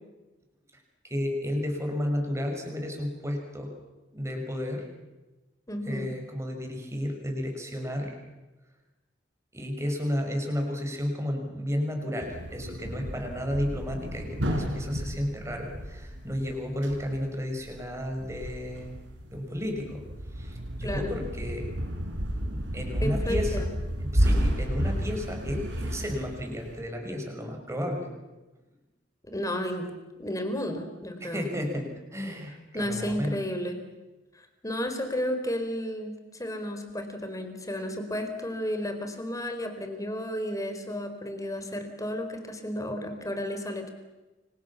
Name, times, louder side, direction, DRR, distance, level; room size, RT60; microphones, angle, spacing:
voice 1, 1.0-3.7 4.1-4.9 5.9-8.1 9.5-19.0 19.3-20.0 20.3-21.7 22.5-23.6 24.0-28.1 31.2-33.4, equal, 15° right, 2 dB, 6.3 m, -32 dB
voice 2, 5.7-6.1 20.8-21.1 23.0-23.7 29.3-29.9 30.2-31.5 32.7-33.8 34.3-43.9, equal, 20° left, 7 dB, 4.2 m, -32 dB
sound 1, 12.2-26.8, equal, 80° right, 5.0 m, -31 dB
30.0 x 25.0 x 7.3 m, 1.1 s
head